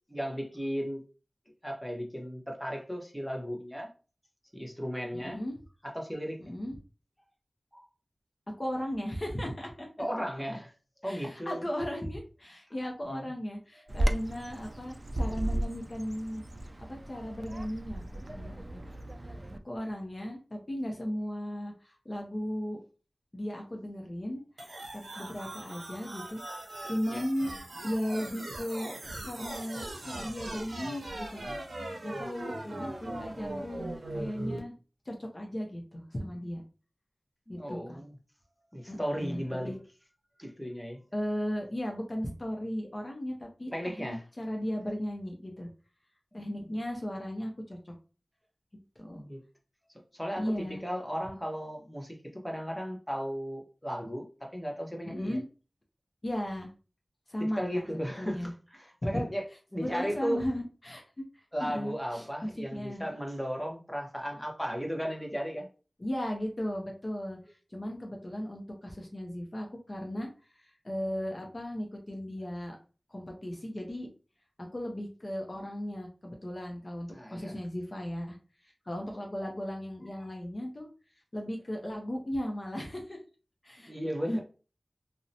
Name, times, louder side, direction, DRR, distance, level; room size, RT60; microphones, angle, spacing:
voice 1, 0.1-1.0 1.6-3.9 4.5-5.4 5.8-6.4 7.7-7.9 10.0-10.7 11.0-11.6 13.0-13.3 27.1-27.2 30.7-30.8 37.5-38.2 38.7-39.8 40.4-41.0 43.7-44.2 46.3-46.7 49.1-49.4 50.1-55.4 57.4-59.4 59.7-60.4 61.5-65.7 77.1-77.5 83.9-84.4, equal, 5° left, 0.7 m, -35 dB
voice 2, 5.1-5.6 6.4-6.8 8.6-9.9 11.0-16.4 16.9-18.8 19.2-19.3 19.6-22.8 23.3-24.4 24.9-26.4 26.9-27.5 27.8-28.9 29.2-31.4 32.0-33.9 34.1-34.7 35.1-36.6 37.5-38.0 38.9-39.7 41.1-45.7 46.3-47.9 49.0-49.2 50.4-50.8 55.0-55.4 56.2-56.7 57.3-58.5 59.0-59.1 59.8-61.2 61.6-62.3 62.7-63.1 66.0-70.3 70.6-72.8 73.1-74.1 74.6-78.4 78.6-80.9 81.3-83.2 83.6-83.9, equal, 40° left, 0.6 m, -36 dB
Bird vocalization bird call bird song, 13.9-19.6, right 1 dB, 40° right, 0.3 m, -34 dB
sound 1, 24.6-34.6, right 1 dB, 90° right, 0.6 m, -40 dB
2.6 x 2.1 x 2.6 m
wide cardioid pair, 55°, 0 cm